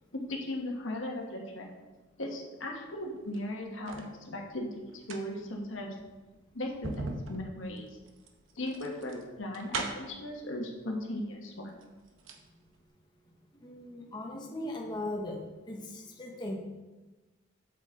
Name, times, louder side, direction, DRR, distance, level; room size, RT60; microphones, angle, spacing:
voice 1, 0.1-1.7 2.2-5.9 6.5-7.9 8.6-11.7, left 1 dB, 70° left, 1 dB, 1.3 m, -37 dB
sound 1, 3.2-4.1 4.8-10.2 11.2-11.3 11.7-12.5 12.8-12.9, right 3 dB, 75° right, 0.9 m, -40 dB
voice 2, 13.6-15.4 15.7-16.6, left 1 dB, 20° left, -1 dB, 1.0 m, -38 dB
8.0 x 7.5 x 3.7 m, 1.2 s
head